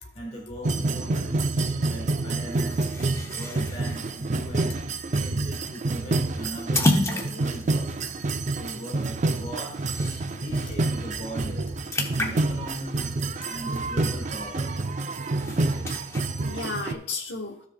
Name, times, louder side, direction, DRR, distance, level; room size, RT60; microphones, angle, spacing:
voice 1, 0.1-2.8 3.3-4.7 5.0-7.9 8.6-9.8 10.4-11.8 12.1-13.1 13.5-14.9 15.4-15.9, equal, 35° left, 1 dB, 1.5 m, -39 dB
sound 1, 0.6-16.9, right 2 dB, 45° right, 0.5 m, -28 dB
sound 2, 2.5-10.5 10.9-11.1 11.3-14.3 14.7-16.3, left 1 dB, 15° left, 0.8 m, -32 dB
voice 2, 10.3-10.8 11.2-11.5 14.8-15.6 16.4-17.6, left 3 dB, 90° left, 1 dB, 1.2 m, -36 dB
13.0 x 7.2 x 2.3 m, 0.67 s
head